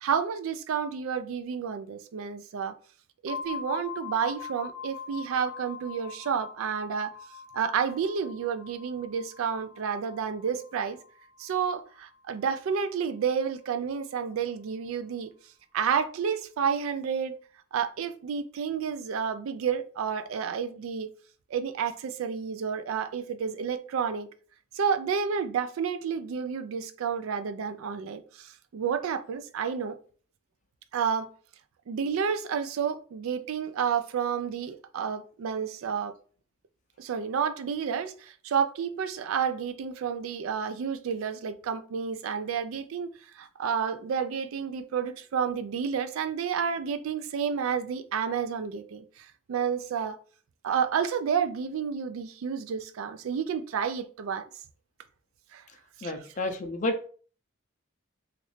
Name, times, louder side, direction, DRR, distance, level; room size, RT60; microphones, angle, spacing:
voice 1, 0.0-2.7 3.2-7.1 7.5-11.0 11.4-15.3 15.7-17.4 17.7-21.1 21.5-24.3 24.7-29.9 30.9-31.3 31.9-36.1 37.0-43.1 43.4-50.2 50.6-54.4 55.5-55.6 56.0-56.1, right 7 dB, 85° right, 0.4 m, -30 dB
sound 1, 3.3-12.9, left 6 dB, 20° right, 0.6 m, -43 dB
voice 2, 56.0-57.1, left 2 dB, 35° left, 0.4 m, -30 dB
3.0 x 2.5 x 3.1 m
head